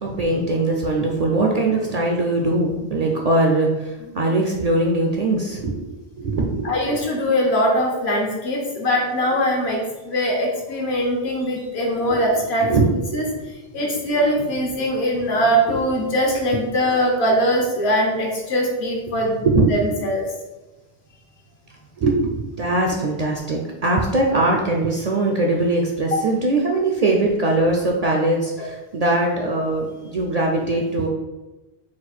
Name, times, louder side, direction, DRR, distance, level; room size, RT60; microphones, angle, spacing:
voice 1, 0.0-6.8 12.0-12.2 12.6-13.2 15.7-15.8 19.4-19.9 22.0-31.1, right 2 dB, 55° right, 0 dB, 0.4 m, -21 dB
voice 2, 6.6-12.7 13.1-13.3 13.7-19.4 19.7-20.2 26.1-26.2 28.6-28.7, equal, 75° left, -1 dB, 1.3 m, -21 dB
4.2 x 2.4 x 4.2 m, 1.1 s
omnidirectional pair, 1.1 m